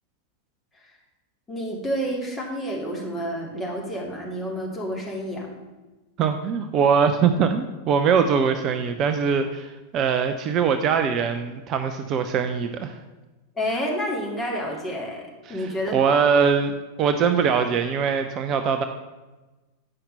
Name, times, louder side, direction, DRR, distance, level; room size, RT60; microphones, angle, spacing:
voice 1, 1.5-5.5 13.6-15.2 15.5-16.0, equal, 15° left, -1 dB, 2.3 m, -29 dB
voice 2, 6.2-13.0 15.5-18.8, right 6 dB, 35° right, 8 dB, 0.5 m, -22 dB
8.7 x 5.8 x 5.3 m, 1.1 s
figure-of-eight pair, 90°, 0 cm